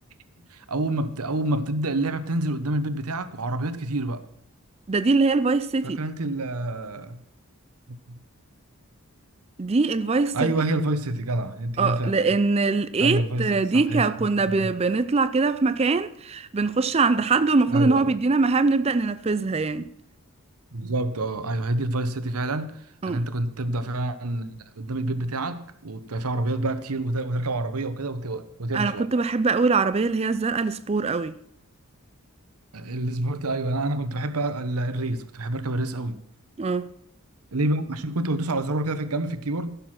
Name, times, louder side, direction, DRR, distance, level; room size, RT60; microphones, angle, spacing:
voice 1, 0.5-4.2 5.8-7.2 7.9-8.2 10.3-12.2 13.0-14.7 17.7-18.1 20.7-29.1 32.7-36.2 37.5-39.8, right 2 dB, 90° right, 1.0 m, -28 dB
voice 2, 4.9-6.0 9.6-10.5 11.8-19.9 23.0-23.2 28.7-31.4 36.6-36.9, right 4 dB, 30° right, 0.4 m, -22 dB
15.5 x 6.9 x 6.0 m
head